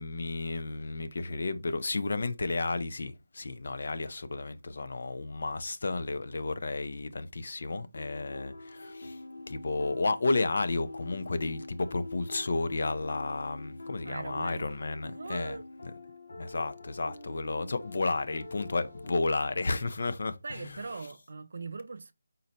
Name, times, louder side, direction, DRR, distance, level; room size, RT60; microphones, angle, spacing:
voice 1, 0.0-9.2 9.5-15.6 16.4-20.8, left 3 dB, 55° left, 0.5 m, -32 dB
sound 1, 7.9-19.3, left 2 dB, 85° left, 0.8 m, -45 dB
voice 2, 14.0-14.7 15.1-15.6 20.4-22.1, right 4 dB, 55° right, 0.4 m, -40 dB
3.9 x 2.1 x 4.0 m
figure-of-eight pair, 170°, 0 cm